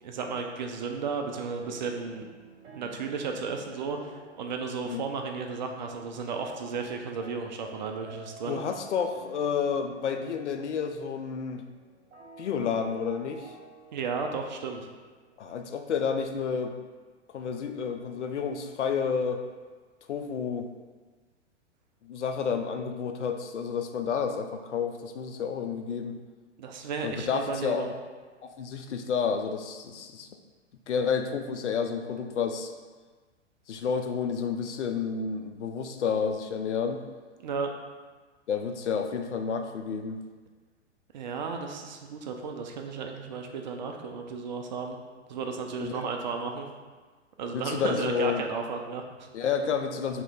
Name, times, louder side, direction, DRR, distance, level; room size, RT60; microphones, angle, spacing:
voice 1, 0.0-2.3 2.8-8.6 13.9-14.9 22.8-22.9 26.6-27.9 37.4-37.7 41.1-45.0 45.3-46.7 47.4-49.3, right 5 dB, 40° right, 3 dB, 0.4 m, -34 dB
sound 1, 1.6-15.6, right 3 dB, 60° right, 1.0 m, -51 dB
voice 2, 8.5-11.6 12.4-13.5 15.4-16.7 17.3-19.4 20.1-20.7 22.0-26.2 27.0-28.0 28.4-30.3 30.9-32.7 33.7-37.0 38.5-40.2 45.8-46.0 47.5-48.5 49.3-50.2, left 6 dB, 70° left, 6 dB, 0.5 m, -30 dB
3.1 x 2.9 x 3.7 m, 1.4 s
figure-of-eight pair, 115°, 36 cm